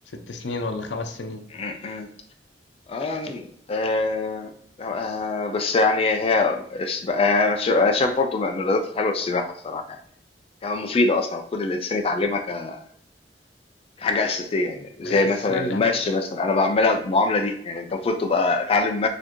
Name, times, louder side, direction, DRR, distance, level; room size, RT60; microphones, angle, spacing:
voice 1, 0.1-1.4 15.0-15.8, left 3 dB, 90° left, 6 dB, 0.6 m, -31 dB
voice 2, 1.5-2.1 2.9-4.5 4.8-10.0 10.6-12.8 14.0-19.1, left 3 dB, 35° left, 5 dB, 0.3 m, -23 dB
4.1 x 2.7 x 2.9 m, 0.64 s
head